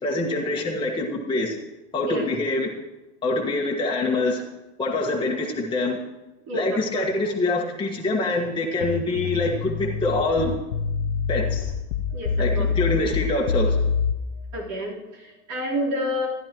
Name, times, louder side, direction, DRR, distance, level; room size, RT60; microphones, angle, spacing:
voice 1, 0.0-1.6 1.9-2.7 3.2-4.4 4.8-6.0 6.5-10.5 11.3-11.7 12.4-13.8, left 2 dB, 15° left, -3 dB, 1.5 m, -25 dB
voice 2, 6.5-7.0 12.1-12.7 14.3-16.3, equal, 50° right, -4 dB, 4.0 m, -29 dB
sound 1, 8.8-14.1, left 5 dB, 85° left, 0.8 m, -25 dB
15.0 x 11.0 x 3.1 m, 1.0 s
hypercardioid pair, 85°, 35 cm